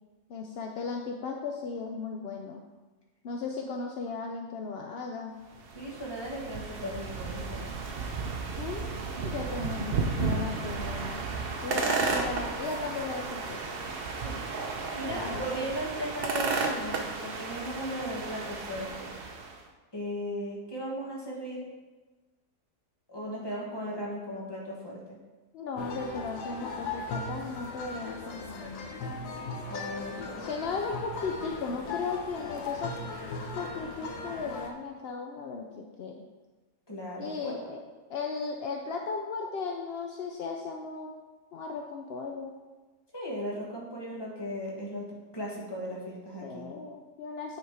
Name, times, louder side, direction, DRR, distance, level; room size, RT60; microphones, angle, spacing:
voice 1, 0.3-2.6 3.2-5.4 8.6-11.3 11.6-13.8 15.1-15.4 25.5-28.9 30.4-32.9 33.5-36.3 37.2-37.8 38.1-41.1 41.5-42.6 46.4-47.6, left 4 dB, 65° left, 2 dB, 0.6 m, -36 dB
sound 1, 5.5-19.6, right 4 dB, 50° right, 0.7 m, -33 dB
voice 2, 5.7-7.6 14.2-14.4 14.7-19.1 19.9-21.7 23.1-25.2 29.7-30.4 36.9-37.7 43.1-45.1 45.3-46.7, equal, 15° left, -4 dB, 1.6 m, -37 dB
sound 2, 25.8-34.7, left 3 dB, 85° left, 1.4 m, -38 dB
9.1 x 4.2 x 4.8 m, 1.2 s
omnidirectional pair, 1.6 m